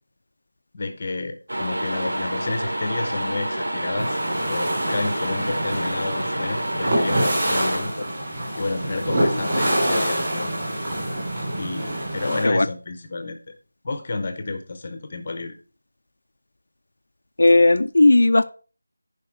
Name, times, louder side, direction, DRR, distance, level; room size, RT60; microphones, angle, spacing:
voice 1, 0.7-4.2 4.5-7.9 8.5-10.5 11.6-13.5 13.8-15.5, left 3 dB, 20° left, 7 dB, 0.8 m, -30 dB
sound 1, 1.5-7.8, right 1 dB, 85° right, 2.9 m, -28 dB
sound 2, 4.0-12.4, right 1 dB, 15° right, 3.0 m, -26 dB
voice 2, 17.4-18.4, left 2 dB, 50° left, 9 dB, 0.5 m, -15 dB
10.5 x 5.0 x 4.5 m, 0.36 s
figure-of-eight pair, 180°, 0 cm